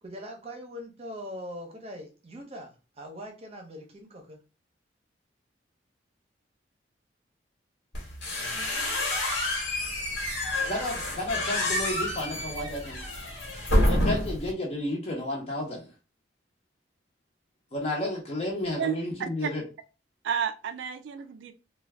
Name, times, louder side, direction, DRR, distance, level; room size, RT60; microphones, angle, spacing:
voice 1, 0.0-4.4, equal, 35° right, 0.7 m, -41 dB
sound 1, 7.9-14.5, left 1 dB, 85° left, 1.2 m, -28 dB
voice 2, 10.7-13.0 13.8-15.9 17.7-19.6, left 1 dB, 35° left, 0.6 m, -32 dB
voice 3, 18.8-19.5 20.2-21.5, right 7 dB, 80° right, 0.3 m, -31 dB
2.5 x 2.3 x 3.3 m
head